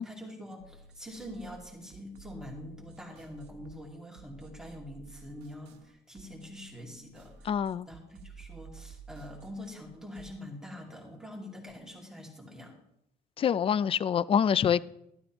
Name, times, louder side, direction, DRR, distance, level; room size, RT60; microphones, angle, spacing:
voice 1, 0.0-7.5 7.9-12.8, left 1 dB, 5° right, 2.4 m, -45 dB
sound 1, 0.6-10.3, right 4 dB, 80° right, 1.2 m, -52 dB
voice 2, 7.4-7.9 13.4-14.8, left 8 dB, 35° left, 0.4 m, -26 dB
12.0 x 12.0 x 3.0 m
cardioid pair, 110°, 17 cm